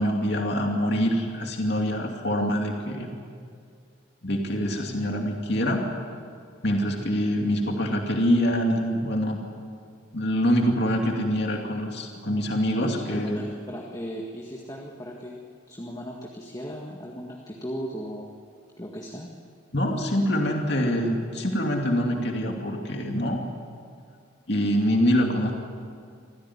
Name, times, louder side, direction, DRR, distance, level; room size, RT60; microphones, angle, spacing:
voice 1, 0.0-3.1 4.2-5.9 6.6-9.4 10.1-13.4 19.7-23.4 24.5-25.5, equal, 55° left, 1 dB, 2.6 m, -25 dB
voice 2, 12.9-15.4 15.7-18.3 18.8-19.3, equal, 20° left, -1 dB, 1.8 m, -37 dB
26.0 x 16.0 x 9.8 m, 2.2 s
head